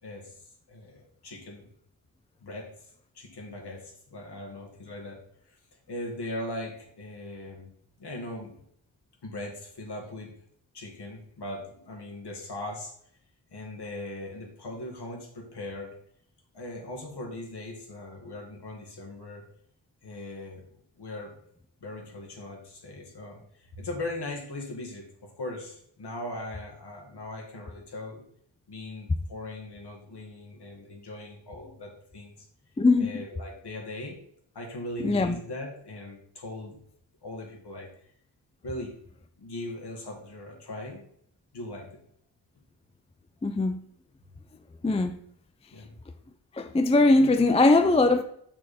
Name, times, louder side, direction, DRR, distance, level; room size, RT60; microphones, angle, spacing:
voice 1, 0.0-0.3 0.7-1.7 2.4-2.7 3.1-5.2 5.5-5.6 5.9-7.7 8.0-8.5 9.2-10.3 10.7-12.9 13.5-15.9 16.5-19.4 20.0-20.6 21.0-21.3 21.8-28.2 28.7-32.5 33.0-34.2 34.5-36.8 37.2-37.9 38.6-38.9 39.4-41.0 41.5-42.0 45.7-46.0, left 1 dB, 55° left, 2.0 m, -39 dB
voice 2, 32.8-33.2 35.0-35.4 43.4-43.8 44.8-45.2 46.5-48.2, left 2 dB, 15° left, 0.4 m, -21 dB
6.2 x 5.9 x 4.3 m
wide cardioid pair, 105°, 47 cm